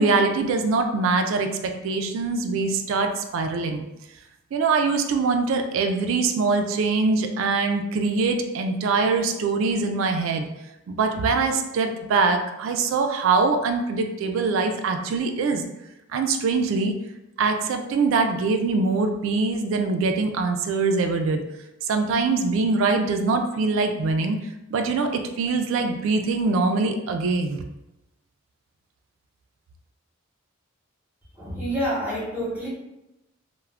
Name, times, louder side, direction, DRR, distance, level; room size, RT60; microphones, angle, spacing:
voice 1, 0.0-3.8 4.5-10.4 10.9-15.6 16.1-16.9 17.4-21.4 21.9-24.4 24.7-27.6, right 4 dB, 65° right, 5 dB, 0.3 m, -23 dB
voice 2, 31.4-32.7, equal, 10° right, -7 dB, 0.8 m, -28 dB
2.3 x 2.1 x 3.2 m, 0.91 s
head